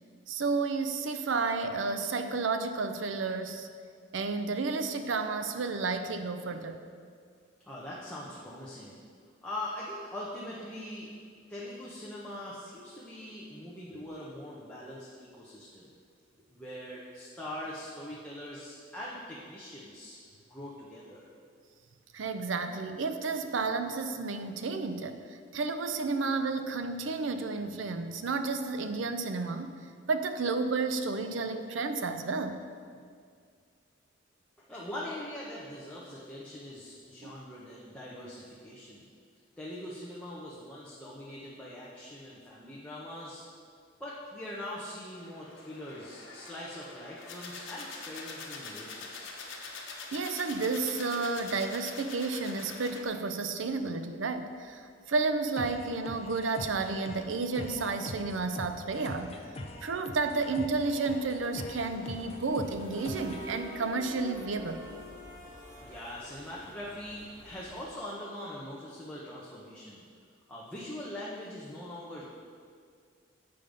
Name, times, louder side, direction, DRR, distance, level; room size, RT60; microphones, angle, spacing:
voice 1, 0.3-3.7 4.1-6.8 22.1-25.2 25.5-29.7 30.1-32.6 37.2-37.3 50.1-59.3 59.8-64.9, right 4 dB, 85° right, 8 dB, 0.5 m, -31 dB
voice 2, 7.6-9.0 9.4-11.1 11.5-15.9 16.5-20.2 20.5-21.3 34.6-39.0 39.6-43.4 44.0-49.4 65.8-70.0 70.5-72.2, left 1 dB, 5° left, -7 dB, 0.9 m, -42 dB
sound 1, 45.2-53.0, left 4 dB, 85° left, 1.0 m, -44 dB
sound 2, 53.7-53.8 54.1-54.3 54.6-54.7 55.0-67.9, equal, 20° right, 1.6 m, -49 dB
sound 3, 55.5-63.5, left 1 dB, 35° left, 0.5 m, -43 dB
7.7 x 5.1 x 5.2 m, 2.1 s
head